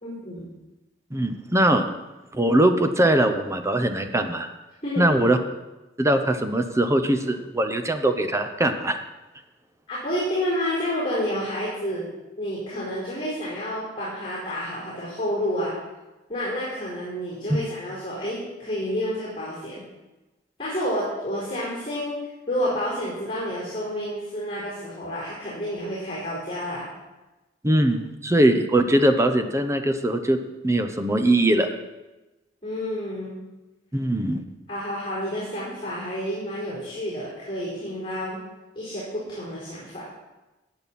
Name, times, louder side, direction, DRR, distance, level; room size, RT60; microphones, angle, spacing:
voice 1, 0.0-0.5 4.8-5.0 9.9-12.1 12.4-15.7 16.3-19.8 20.6-22.2 22.5-26.9 32.6-33.4 34.7-38.4 38.7-40.0, equal, 30° left, -7 dB, 4.5 m, -29 dB
voice 2, 1.1-1.8 2.3-4.5 5.0-5.4 6.0-9.0 17.5-17.6 27.6-30.4 30.6-31.7 33.9-34.4, right 1 dB, 15° right, 7 dB, 0.8 m, -21 dB
15.5 x 9.0 x 4.3 m, 1.1 s
head